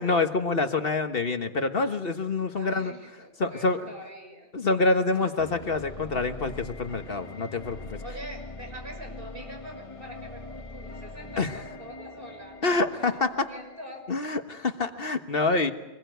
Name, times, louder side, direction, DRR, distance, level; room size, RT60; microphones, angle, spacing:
voice 1, 0.0-2.9 3.4-3.9 4.5-8.0 11.4-11.5 12.6-13.5 14.1-15.7, left 3 dB, 60° left, 7 dB, 1.5 m, -26 dB
voice 2, 2.5-4.5 5.2-5.3 8.0-12.6 13.0-14.0, right 1 dB, 55° right, 2 dB, 6.6 m, -44 dB
sound 1, 5.4-14.4, left 2 dB, 30° left, 1.4 m, -42 dB
25.0 x 21.0 x 9.2 m, 1.0 s
omnidirectional pair, 1.1 m